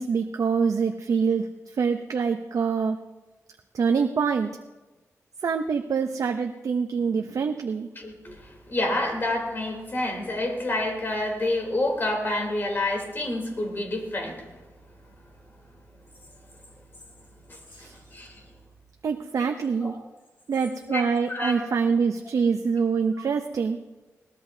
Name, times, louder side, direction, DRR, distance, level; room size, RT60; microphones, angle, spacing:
voice 1, 0.0-1.5 1.8-3.0 3.7-4.5 5.4-7.9 17.7-17.9 19.0-19.9 20.5-23.8, right 5 dB, 75° right, 5 dB, 0.6 m, -25 dB
voice 2, 7.9-14.4 17.5-18.3 19.8-19.9 20.9-21.7, left 1 dB, 40° left, 1 dB, 3.2 m, -28 dB
21.5 x 18.5 x 2.7 m, 1.2 s
wide cardioid pair, 140°, 6 cm